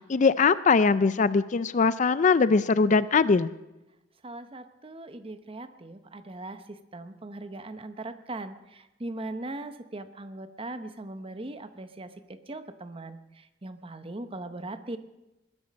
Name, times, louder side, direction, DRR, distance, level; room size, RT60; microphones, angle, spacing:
voice 1, 0.1-3.5, left 4 dB, 40° left, 15 dB, 0.4 m, -21 dB
voice 2, 4.2-15.0, right 2 dB, 30° right, 10 dB, 0.8 m, -40 dB
20.5 x 10.5 x 5.3 m, 0.99 s
head